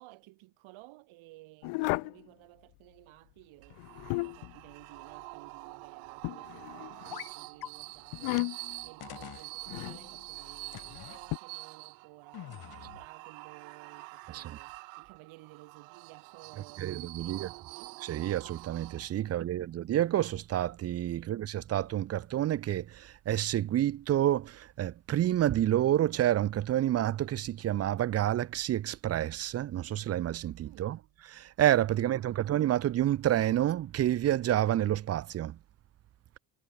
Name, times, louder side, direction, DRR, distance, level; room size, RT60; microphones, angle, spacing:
voice 1, 0.0-16.9 17.2-18.0 19.2-19.8 21.2-21.4 30.6-31.2 31.9-32.4, right 20 dB, 70° right, 4.8 m, -55 dB
sound 1, 1.6-2.2 3.7-4.5 6.2-7.1 8.1-8.8 9.7-10.0 11.3-11.4, left 27 dB, 75° left, 1.4 m, -33 dB
sound 2, 3.6-19.4, right 39 dB, 85° right, 1.9 m, -47 dB
sound 3, 7.1-7.3 7.6-7.7 8.4-8.5 9.0-9.5 10.7-11.2 12.3-13.1, left 12 dB, 45° left, 1.9 m, -44 dB
voice 2, 16.8-17.5 18.0-31.0 31.3-35.6, right 12 dB, 30° right, 0.5 m, -29 dB
supercardioid pair, 105°, 49 cm